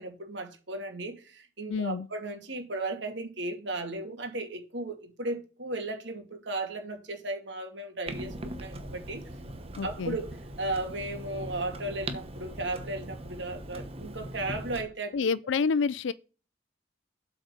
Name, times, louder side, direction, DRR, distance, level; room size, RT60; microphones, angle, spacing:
voice 1, 0.0-9.2 9.8-10.3 10.6-15.3, right 2 dB, 70° right, 2.4 m, -35 dB
voice 2, 1.7-2.1 9.8-10.2 15.1-16.1, left 5 dB, 75° left, 0.4 m, -28 dB
Clock, 8.1-14.8, right 1 dB, 30° right, 1.1 m, -40 dB
8.2 x 4.8 x 6.6 m
head